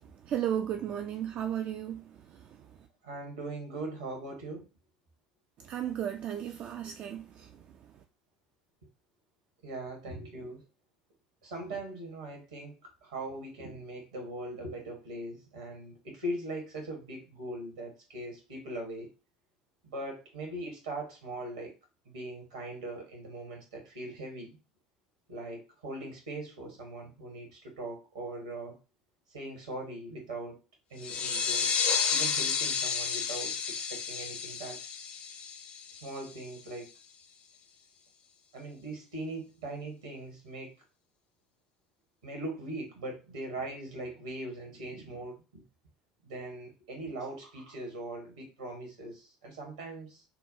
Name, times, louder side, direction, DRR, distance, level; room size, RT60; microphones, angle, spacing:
voice 1, 0.0-2.7 5.6-7.6, right 10 dB, 40° right, 0.3 m, -35 dB
voice 2, 3.0-4.7 6.8-6.9 9.6-10.6 11.4-19.1 19.8-21.7 22.0-24.5 25.3-28.8 29.3-30.6 30.9-31.7 32.1-34.8 35.9-36.9 38.5-40.7 42.2-45.6 46.2-50.2, right 1 dB, 70° right, 1.4 m, -40 dB
sound 1, 31.0-36.3, left 6 dB, 40° left, 0.5 m, -31 dB
5.6 x 2.2 x 2.7 m
figure-of-eight pair, 65°, 3 cm